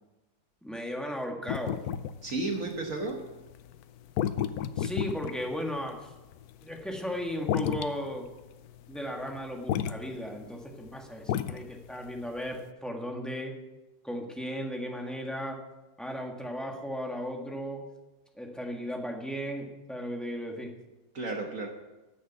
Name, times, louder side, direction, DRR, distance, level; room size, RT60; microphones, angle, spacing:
voice 1, 0.6-1.8 4.8-6.1 6.6-8.3 8.9-13.5 14.0-15.6 16.0-17.8 18.4-20.7, equal, ahead, 1 dB, 1.3 m, -36 dB
sound 1, 1.5-12.7, left 10 dB, 70° left, 0.9 m, -33 dB
voice 2, 2.2-3.3 21.1-21.7, right 2 dB, 50° right, 2 dB, 1.5 m, -33 dB
12.5 x 6.5 x 8.1 m, 1.1 s
omnidirectional pair, 2.0 m